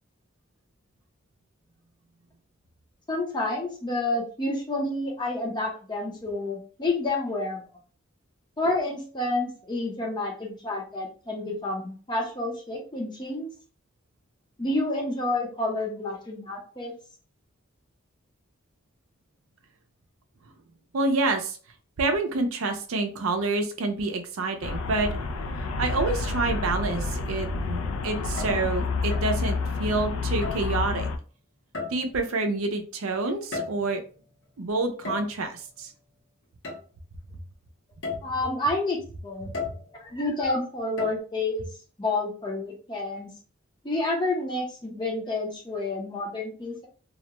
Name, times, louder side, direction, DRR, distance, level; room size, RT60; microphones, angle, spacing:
voice 1, 3.1-7.6 8.6-13.5 14.6-16.9 38.2-39.0 39.2-39.5 40.0-41.7 42.0-43.3 43.8-46.9, left 2 dB, 20° left, 0 dB, 0.6 m, -29 dB
voice 2, 20.9-21.6 22.0-25.2 25.6-31.1 31.9-34.0 34.6-35.9 39.5-39.6, right 3 dB, 90° right, 5 dB, 0.5 m, -28 dB
Traffic noise roadway noise, 24.6-31.2, left 3 dB, 90° left, 0.3 m, -29 dB
sound 1, 28.2-28.7 29.1-29.4 30.4-30.7 31.7-32.2 33.3-34.0 35.0-35.4 36.6-36.8 37.3-37.4 38.0-38.4 39.5-39.9 41.0-41.2, left 4 dB, 60° left, 0.8 m, -35 dB
2.4 x 2.1 x 2.9 m, 0.39 s
head